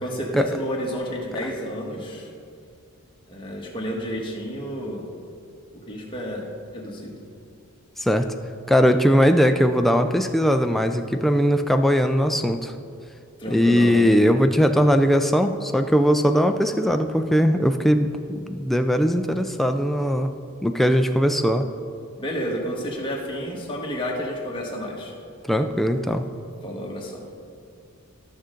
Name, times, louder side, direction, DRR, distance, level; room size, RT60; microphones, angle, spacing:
voice 1, 0.0-2.3 3.3-5.1 5.7-7.2 13.4-14.0 22.2-25.1 26.6-27.3, equal, 25° left, -2 dB, 1.4 m, -31 dB
voice 2, 8.7-12.7 13.5-21.7 25.5-26.2, equal, ahead, 6 dB, 0.3 m, -20 dB
13.0 x 6.4 x 3.8 m, 2.4 s
head